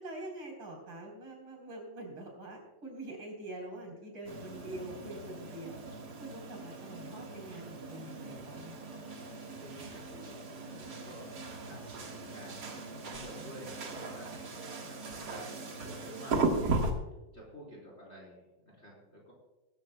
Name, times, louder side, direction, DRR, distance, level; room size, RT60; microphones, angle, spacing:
voice 1, 0.0-5.8 6.2-9.0, right 1 dB, 85° right, 0 dB, 4.7 m, -45 dB
sound 1, 4.2-16.9, right 3 dB, 60° right, 2.1 m, -38 dB
voice 2, 9.6-11.3 11.7-14.4 14.9-16.8 17.3-19.3, equal, 35° left, -4 dB, 4.5 m, -51 dB
20.5 x 14.0 x 2.2 m, 1.0 s
omnidirectional pair, 2.1 m